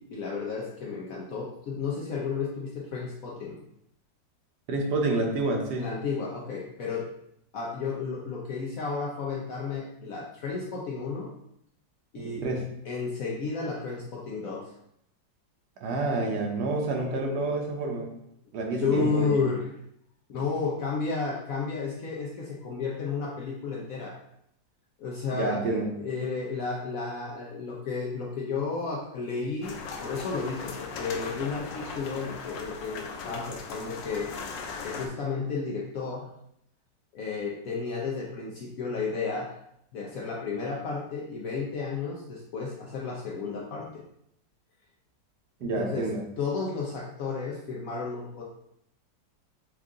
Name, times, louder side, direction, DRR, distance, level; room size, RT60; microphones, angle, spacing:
voice 1, 0.0-3.6 5.8-7.1 7.5-11.3 12.1-12.5 12.8-14.7 18.7-19.6 20.3-24.2 25.0-36.3 37.1-39.5 39.9-44.0 45.6-46.1 46.4-48.4, left 4 dB, 65° left, -2 dB, 0.8 m, -32 dB
voice 2, 4.7-5.9 12.4-12.7 15.8-18.1 18.5-19.3 25.3-25.9 45.6-46.2, right 2 dB, 70° right, 1 dB, 1.3 m, -28 dB
sound 1, 29.6-35.1, left 4 dB, 85° left, 1.3 m, -38 dB
4.5 x 2.5 x 3.6 m, 0.76 s
omnidirectional pair, 1.9 m